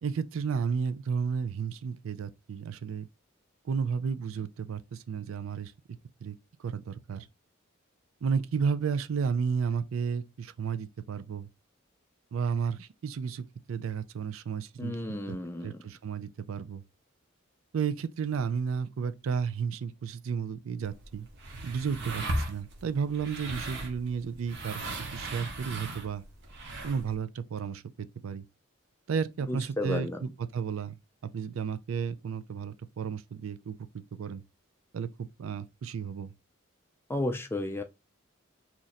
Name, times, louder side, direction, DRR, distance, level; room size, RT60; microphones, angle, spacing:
voice 1, 0.0-3.1 3.7-5.7 6.2-7.3 8.2-11.5 12.3-15.4 15.6-16.8 17.7-21.3 21.6-24.8 25.1-26.2 26.8-28.4 29.1-30.9 31.3-33.8 34.1-34.4 34.9-36.3, right 6 dB, 80° right, 0.4 m, -33 dB
voice 2, 14.8-15.8 29.5-30.2 37.1-37.8, left 1 dB, 10° left, 0.3 m, -32 dB
sound 1, 20.8-27.1, right 2 dB, 60° right, 1.0 m, -37 dB
2.9 x 2.5 x 4.1 m
head